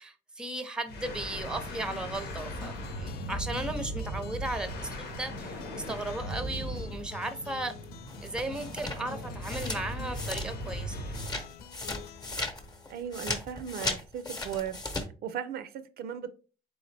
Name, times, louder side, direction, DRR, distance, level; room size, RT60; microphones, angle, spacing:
voice 1, 0.0-7.7 8.2-11.0, right 2 dB, 5° right, 0.6 m, -36 dB
sound 1, 0.9-11.4, right 1 dB, 85° left, 1.1 m, -38 dB
sound 2, 1.4-13.6, left 10 dB, 65° left, 0.4 m, -49 dB
sound 3, 8.1-10.8 11.1-15.0, left 2 dB, 25° left, 0.9 m, -36 dB
voice 2, 12.9-14.8 15.2-16.3, right 9 dB, 70° right, 0.5 m, -36 dB
3.8 x 3.5 x 3.3 m
cardioid pair, 110°, 17 cm